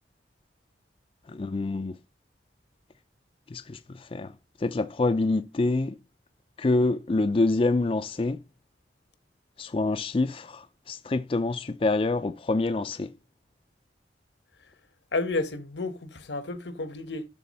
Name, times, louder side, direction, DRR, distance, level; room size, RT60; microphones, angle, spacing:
voice 1, 1.3-1.9 3.5-4.3 4.6-6.0 6.6-8.4 9.6-13.1, left 2 dB, 30° left, 0.4 m, -26 dB
voice 2, 15.1-17.3, left 2 dB, 80° left, 1.2 m, -31 dB
12.5 x 4.2 x 4.1 m
head